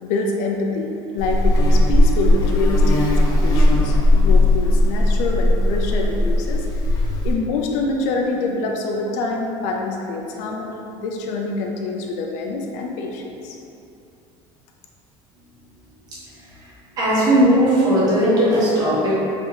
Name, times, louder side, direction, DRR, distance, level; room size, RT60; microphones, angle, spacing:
voice 1, 0.0-6.7 7.2-13.6, left 3 dB, 75° left, 1 dB, 0.5 m, -26 dB
Buzz, 1.2-7.3, left 1 dB, 30° left, 0.6 m, -17 dB
voice 2, 17.0-19.1, equal, 30° right, -9 dB, 1.3 m, -17 dB
4.5 x 2.9 x 3.2 m, 2.7 s
cardioid pair, 170°, 13 cm